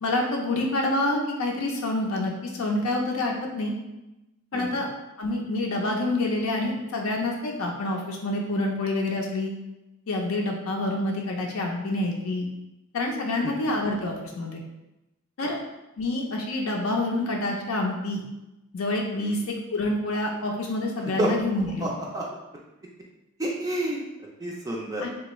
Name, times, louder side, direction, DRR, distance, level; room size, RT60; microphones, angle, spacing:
voice 1, 0.0-3.7 4.5-4.9 5.2-9.5 10.1-12.5 12.9-14.6 15.4-15.6 16.0-18.2 18.7-21.9 25.0-25.1, left 2 dB, 85° left, 0 dB, 0.5 m, -27 dB
voice 2, 21.8-22.2 23.4-24.0 24.4-25.1, right 1 dB, 15° right, -3 dB, 0.3 m, -29 dB
3.3 x 2.3 x 2.9 m, 0.97 s
head